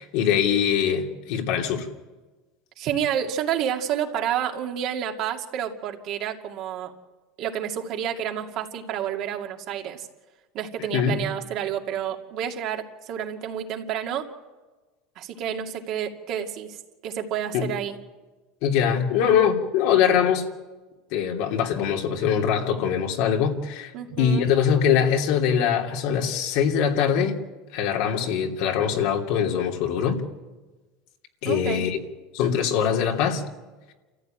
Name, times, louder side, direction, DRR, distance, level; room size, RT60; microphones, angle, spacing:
voice 1, 0.0-1.9 10.9-11.2 17.5-17.7 18.6-20.5 21.1-23.9 24.2-27.4 27.7-30.2 31.4-32.0 32.3-33.4, left 8 dB, 65° left, 2 dB, 2.9 m, -22 dB
voice 2, 2.8-6.9 7.4-10.1 10.5-14.3 15.2-16.8 17.0-18.0 23.9-24.5 31.4-31.9, right 9 dB, 50° right, 2 dB, 2.4 m, -29 dB
28.5 x 14.5 x 9.1 m, 1.2 s
supercardioid pair, 135°, 0 cm